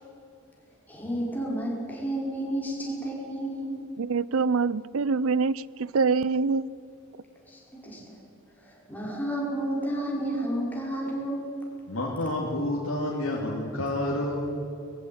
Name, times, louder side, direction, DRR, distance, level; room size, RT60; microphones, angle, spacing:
voice 1, 0.9-3.8 7.7-8.2 8.9-11.4, right 1 dB, 10° left, -4 dB, 5.2 m, -31 dB
voice 2, 4.0-6.6, right 4 dB, 70° right, 20 dB, 0.5 m, -25 dB
voice 3, 11.9-14.6, left 1 dB, 65° left, -3 dB, 2.5 m, -29 dB
20.5 x 14.5 x 9.3 m, 2.8 s
head